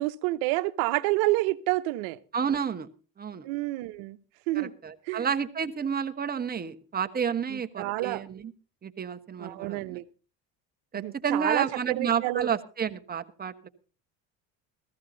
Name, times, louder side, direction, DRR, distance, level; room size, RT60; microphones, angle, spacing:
voice 1, 0.0-2.2 3.4-4.2 4.5-4.7 5.1-5.3 7.5-8.2 9.4-10.0 10.9-12.5, right 19 dB, 80° right, 0.9 m, -29 dB
voice 2, 2.3-2.9 3.2-3.4 4.5-8.5 8.8-10.0 10.9-13.7, right 7 dB, 25° right, 1.2 m, -30 dB
15.0 x 14.0 x 3.9 m
supercardioid pair, 95°, 36 cm